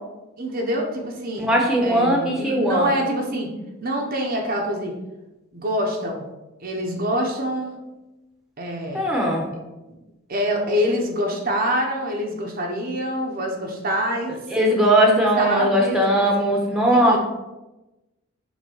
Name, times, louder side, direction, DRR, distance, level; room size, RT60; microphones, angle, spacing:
voice 1, 0.4-1.5 1.8-3.5 3.8-4.9 5.5-6.3 6.6-7.8 8.6-9.0 9.9-10.0 10.3-14.4 15.4-17.2, equal, 45° right, 1 dB, 1.0 m, -26 dB
voice 2, 1.4-2.9 8.9-9.5 14.5-17.2, right 1 dB, 5° right, -1 dB, 1.1 m, -19 dB
6.4 x 3.5 x 5.5 m, 1.0 s
head